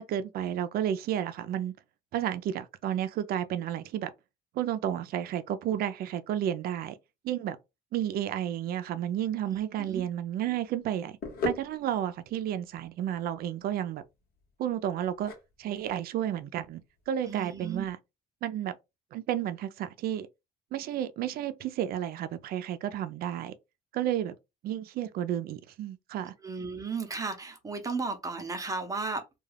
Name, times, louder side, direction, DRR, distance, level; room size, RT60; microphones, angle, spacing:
voice 1, 0.0-1.7 2.1-4.1 4.6-6.9 7.2-7.6 7.9-11.2 11.4-14.0 14.6-15.3 15.6-16.8 17.1-18.0 18.4-18.7 19.1-20.3 20.7-23.5 23.9-24.3 24.6-26.3, right 10 dB, 65° right, 0.4 m, -31 dB
voice 2, 9.5-10.0 17.2-17.9 26.4-29.2, right 4 dB, 20° right, 0.7 m, -35 dB
sound 1, 9.9-17.8, left 3 dB, 65° left, 0.9 m, -41 dB
2.3 x 2.3 x 3.2 m
cardioid pair, 110°, 17 cm